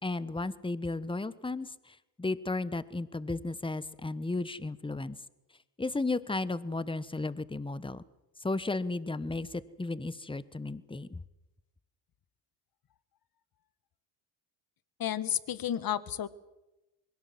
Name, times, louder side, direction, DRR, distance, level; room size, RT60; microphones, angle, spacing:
voice 1, 0.0-5.2 5.8-8.0 8.4-11.2, left 2 dB, 10° left, 16 dB, 1.2 m, -34 dB
voice 2, 15.0-16.3, left 10 dB, 45° left, 16 dB, 1.5 m, -31 dB
21.5 x 18.0 x 7.8 m, 0.99 s
hypercardioid pair, 65°, 49 cm